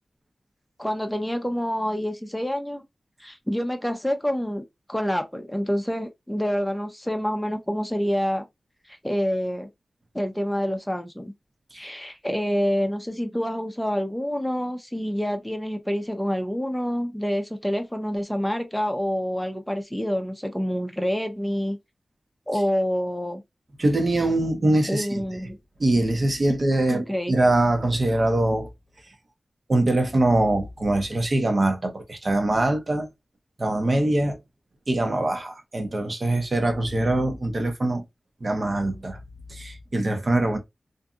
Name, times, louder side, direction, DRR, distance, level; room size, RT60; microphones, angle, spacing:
voice 1, 0.8-2.8 3.2-4.6 4.9-8.5 8.9-9.7 10.1-11.3 11.7-21.8 22.5-23.4 24.9-25.6 26.9-27.3, equal, 5° left, 0.6 m, -27 dB
voice 2, 23.8-25.2 25.8-28.7 29.7-33.1 33.6-34.4 34.9-38.0 38.4-39.2 39.5-40.6, right 2 dB, 50° right, 0.7 m, -23 dB
2.6 x 2.6 x 2.3 m
wide cardioid pair, 60°, 0 cm